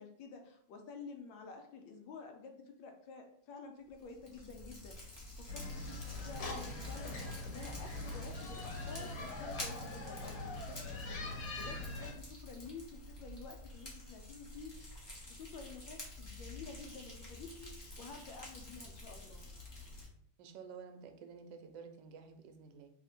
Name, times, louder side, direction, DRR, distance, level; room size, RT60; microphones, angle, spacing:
voice 1, 0.0-14.9 15.3-19.4, left 4 dB, 80° left, 4 dB, 1.3 m, -51 dB
Fire, 3.9-20.1, left 2 dB, 25° left, 0.6 m, -49 dB
sound 1, 5.5-12.1, left 2 dB, 60° left, 1.5 m, -43 dB
voice 2, 20.4-22.9, right 6 dB, 75° right, 6 dB, 1.2 m, -51 dB
3.3 x 2.8 x 4.1 m, 0.66 s
omnidirectional pair, 2.1 m